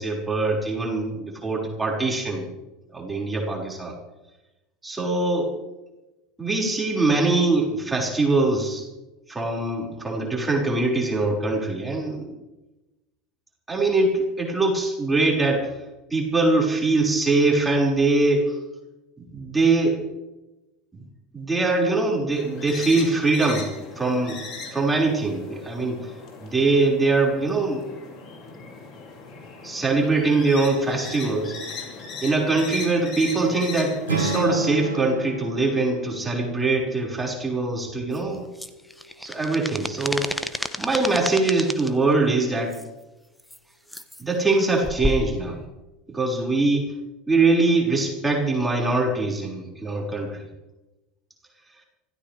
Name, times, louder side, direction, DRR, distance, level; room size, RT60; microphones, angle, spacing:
voice 1, 0.0-2.5 2.9-3.9 4.8-5.5 6.4-8.9 9.3-12.4 13.7-15.7 16.1-18.6 19.2-20.0 20.9-21.0 21.3-23.7 24.0-24.4 24.7-26.0 26.4-27.9 29.6-31.6 32.2-38.5 39.2-40.4 40.8-42.8 44.2-45.6 46.1-46.9 47.3-50.4, right 3 dB, 10° right, -2 dB, 5.6 m, -23 dB
sound 1, 22.3-34.4, left 4 dB, 40° left, 6.1 m, -38 dB
Strum, 34.1-38.3, right 2 dB, 80° right, 1.9 m, -31 dB
sound 2, 38.1-41.9 42.7-42.9 43.4-43.6 43.9-44.2 44.8-45.3, left 1 dB, 5° left, 1.2 m, -31 dB
26.0 x 15.5 x 3.5 m, 1.0 s
figure-of-eight pair, 75°, 0 cm